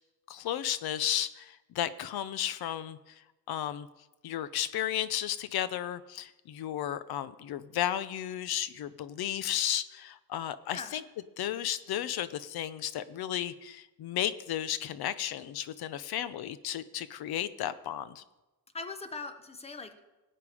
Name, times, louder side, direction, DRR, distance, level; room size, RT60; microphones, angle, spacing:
voice 1, 0.3-3.2 3.5-3.9 4.2-11.0 11.4-18.2, left 11 dB, 70° left, 15 dB, 0.8 m, -34 dB
voice 2, 10.7-11.0 18.7-20.0, left 3 dB, 15° left, 9 dB, 0.9 m, -41 dB
18.0 x 8.9 x 4.9 m, 1.1 s
cardioid pair, 145°, 39 cm